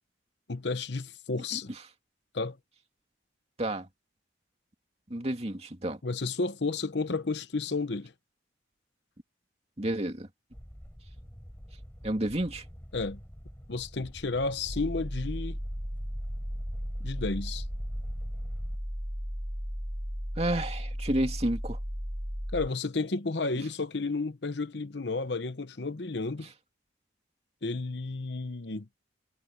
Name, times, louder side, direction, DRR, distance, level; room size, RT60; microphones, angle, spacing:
voice 1, 0.5-1.7 2.3-2.6 6.0-8.1 12.9-13.2 13.7-15.6 17.0-17.6 22.5-26.5 27.6-28.9, left 3 dB, 65° left, 0.9 m, -32 dB
voice 2, 5.1-6.0 9.8-10.3 12.0-12.6 20.4-21.8, right 1 dB, 35° right, 2.5 m, -30 dB
sound 1, 10.5-18.8, equal, 10° left, 3.7 m, -46 dB
sound 2, 14.7-22.7, equal, 10° right, 3.0 m, -35 dB
head